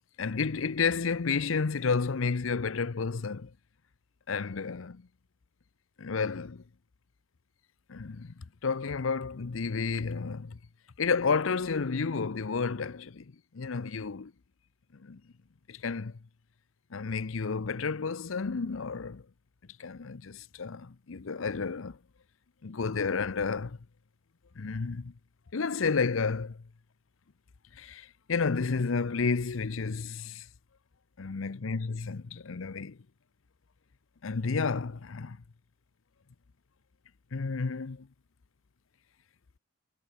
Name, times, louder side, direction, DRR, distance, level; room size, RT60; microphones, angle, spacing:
voice 1, 0.2-3.5 4.3-5.1 6.0-6.6 7.9-10.6 11.0-14.3 14.9-15.2 15.7-16.2 16.9-19.2 19.8-22.0 22.6-23.8 24.6-25.1 25.5-26.6 27.7-30.5 31.2-33.0 34.2-35.4 37.3-38.1, left 5 dB, 70° left, 0.7 m, -31 dB
head